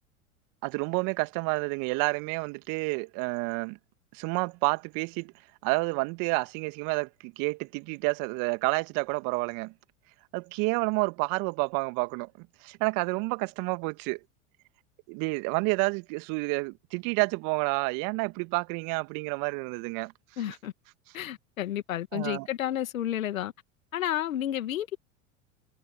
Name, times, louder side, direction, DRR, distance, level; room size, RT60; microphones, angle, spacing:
voice 1, 0.6-3.8 4.1-5.3 5.6-9.7 10.3-14.2 15.1-20.1 22.1-22.5, right 29 dB, 50° right, 2.0 m, -29 dB
voice 2, 20.4-20.7 21.1-23.5 23.9-25.0, left 12 dB, 75° left, 2.1 m, -31 dB
figure-of-eight pair, 85°, 41 cm